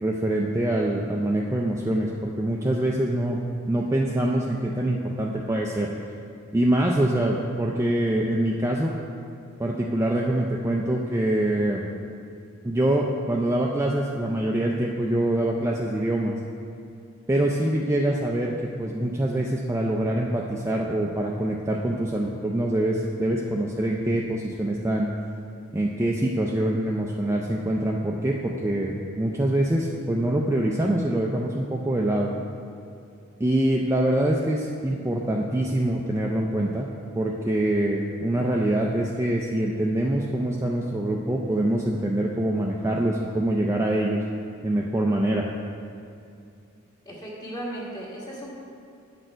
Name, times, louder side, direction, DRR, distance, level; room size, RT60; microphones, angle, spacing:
voice 1, 0.0-3.4 3.7-5.9 6.5-8.9 9.6-11.8 12.6-16.3 17.3-18.5 18.8-25.1 25.7-32.3 33.4-36.9 37.1-44.2 44.6-45.5, right 1 dB, 15° right, -1 dB, 0.4 m, -24 dB
voice 2, 47.0-48.5, right 1 dB, 20° left, -5 dB, 1.5 m, -36 dB
9.0 x 6.5 x 4.5 m, 2.5 s
head